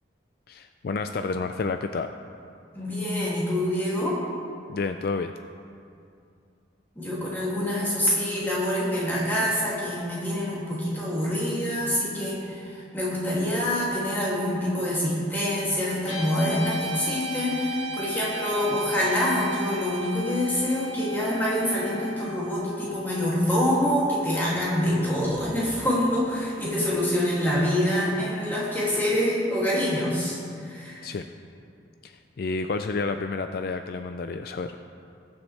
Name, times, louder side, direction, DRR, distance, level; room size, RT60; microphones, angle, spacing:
voice 1, 0.5-2.1 4.7-5.3 31.0-31.2 32.0-34.8, left 4 dB, 50° left, 7 dB, 0.3 m, -30 dB
voice 2, 2.7-4.2 7.0-31.0, left 1 dB, 10° left, -7 dB, 2.5 m, -26 dB
Guitar, 16.0-24.5, equal, 90° left, 2.9 m, -36 dB
20.5 x 7.1 x 3.3 m, 2.4 s
head